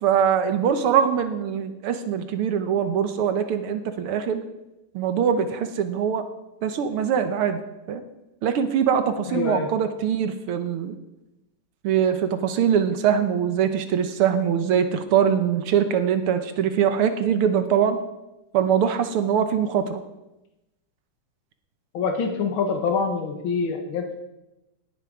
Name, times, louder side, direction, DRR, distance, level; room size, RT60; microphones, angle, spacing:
voice 1, 0.0-4.4 4.9-6.2 6.6-8.0 8.4-10.9 11.8-18.0 18.5-20.0, right 8 dB, 85° right, 8 dB, 1.9 m, -22 dB
voice 2, 9.3-9.7 21.9-24.2, left 5 dB, 65° left, 4 dB, 2.3 m, -25 dB
18.5 x 9.6 x 4.9 m, 0.96 s
omnidirectional pair, 2.4 m